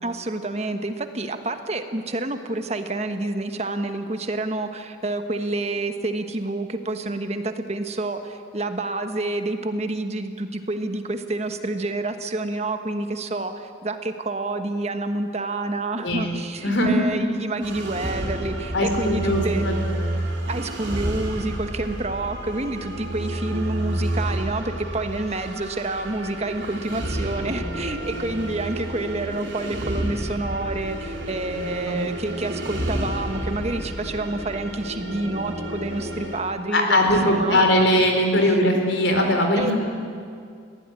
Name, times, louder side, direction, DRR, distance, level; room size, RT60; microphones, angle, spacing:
voice 1, 0.0-19.7 20.5-38.0 38.3-38.5 39.6-39.7, right 2 dB, 35° right, 8 dB, 1.3 m, -28 dB
voice 2, 16.0-16.4 16.6-17.0 18.7-19.8 31.5-31.6 31.9-32.0 36.7-39.7, left 1 dB, 75° left, 3 dB, 4.2 m, -20 dB
sound 1, 17.6-36.4, right 1 dB, 75° right, 4.8 m, -30 dB
22.0 x 16.5 x 9.7 m, 2.3 s
head